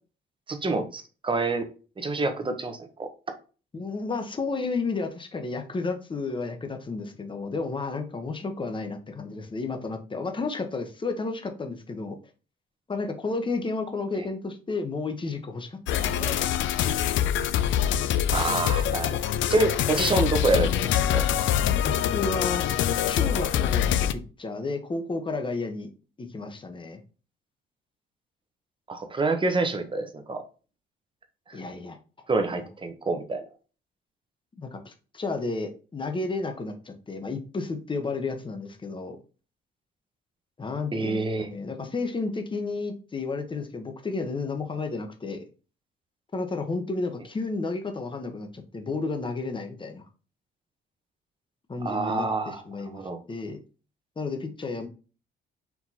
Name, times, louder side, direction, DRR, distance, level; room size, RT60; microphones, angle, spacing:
voice 1, 0.5-1.7 2.0-3.1 18.3-19.2 19.5-21.2 28.9-30.4 31.5-31.6 32.3-33.4 40.9-41.5 51.8-53.2, right 3 dB, 25° right, 7 dB, 0.9 m, -27 dB
voice 2, 3.7-12.2 12.9-16.7 21.8-22.6 23.1-25.9 26.2-27.0 31.5-32.0 32.5-32.7 34.6-39.2 40.6-45.4 46.3-50.0 51.7-53.0 53.3-53.6 54.2-54.9, left 3 dB, 25° left, 6 dB, 0.9 m, -32 dB
sound 1, 15.9-24.1, left 10 dB, 75° left, 0.4 m, -25 dB
4.6 x 2.9 x 4.0 m, 0.35 s
cardioid pair, 90°, 20 cm